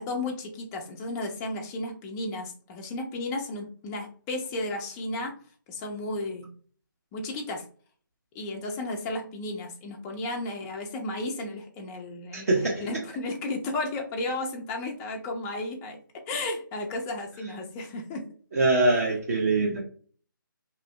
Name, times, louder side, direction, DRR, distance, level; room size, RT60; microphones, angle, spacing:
voice 1, 0.0-5.3 5.7-6.5 7.1-7.7 8.3-18.2, left 2 dB, 10° left, 0.3 m, -33 dB
voice 2, 12.3-12.8 18.5-19.8, right 2 dB, 45° right, 0.8 m, -23 dB
2.9 x 2.6 x 3.1 m
figure-of-eight pair, 155°, 11 cm